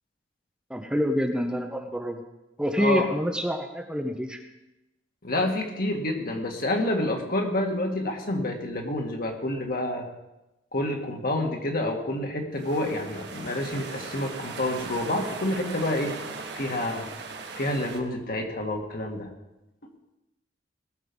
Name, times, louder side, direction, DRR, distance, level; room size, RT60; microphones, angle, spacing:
voice 1, 0.7-2.2 2.6-4.4, equal, 5° right, 4 dB, 0.8 m, -27 dB
voice 2, 2.8-3.1 5.2-10.1 10.7-16.1 16.5-17.1 17.6-19.3, left 1 dB, 55° left, 2 dB, 1.9 m, -28 dB
sound 1, 12.5-18.0, right 4 dB, 65° right, 1.5 m, -39 dB
19.5 x 6.6 x 5.4 m, 0.97 s
head